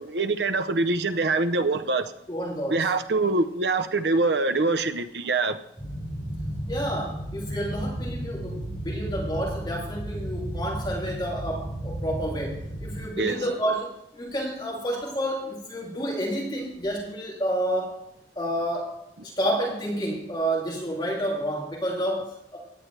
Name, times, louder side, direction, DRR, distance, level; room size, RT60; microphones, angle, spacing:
voice 1, 0.0-2.1 2.7-5.6 13.2-13.4, right 3 dB, 70° right, 0.8 m, -24 dB
voice 2, 2.3-2.9 6.7-18.0 18.4-19.0 19.2-22.6, equal, 25° left, 2.9 m, -30 dB
sound 1, 5.8-13.0, right 1 dB, 10° left, 4.0 m, -33 dB
17.0 x 10.5 x 3.3 m
head